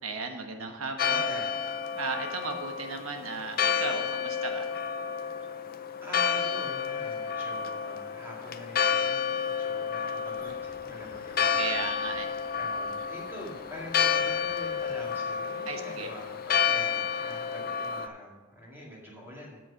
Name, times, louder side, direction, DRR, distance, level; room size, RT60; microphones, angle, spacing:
voice 1, 0.0-1.4 1.9-4.7 11.6-12.3 15.7-16.1, right 4 dB, 90° right, 5 dB, 1.3 m, -35 dB
voice 2, 0.6-1.5 6.0-11.8 12.5-19.6, equal, 10° right, -4 dB, 2.2 m, -45 dB
Church bell, 1.0-18.1, left 7 dB, 45° left, 0.5 m, -30 dB
sound 1, 10.2-16.6, right 1 dB, 40° right, 1.6 m, -56 dB
7.7 x 7.4 x 6.1 m, 1.3 s
head